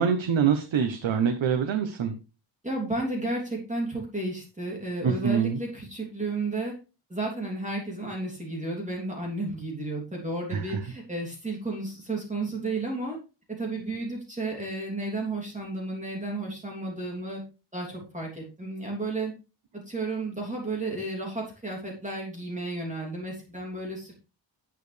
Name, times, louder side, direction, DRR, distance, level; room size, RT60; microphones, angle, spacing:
voice 1, 0.0-2.2 5.0-5.6 10.5-10.8, right 7 dB, 80° right, 7 dB, 1.1 m, -25 dB
voice 2, 2.6-6.7 7.1-13.2 13.6-17.4 17.7-19.3 19.7-24.1, right 2 dB, 15° right, -2 dB, 3.0 m, -32 dB
10.5 x 9.0 x 3.3 m, 0.32 s
wide cardioid pair, 160°, 46 cm